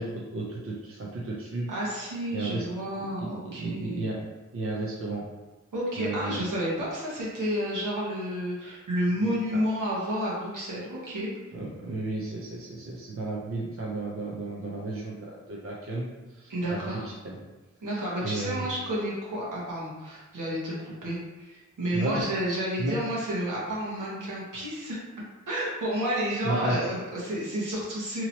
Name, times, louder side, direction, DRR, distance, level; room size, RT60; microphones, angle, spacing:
voice 1, 0.0-1.7 2.3-2.7 3.2-4.2 4.5-5.2 6.0-6.4 9.2-9.6 11.5-17.4 17.9-18.7 21.9-22.2 22.8-23.0 26.4-26.8, right 2 dB, 45° right, -4 dB, 0.6 m, -33 dB
voice 2, 1.7-4.0 5.7-11.3 16.5-17.1 17.8-25.0 25.5-28.2, equal, 80° right, -6 dB, 1.1 m, -30 dB
2.9 x 2.8 x 2.8 m, 1.1 s
wide cardioid pair, 85°, 31 cm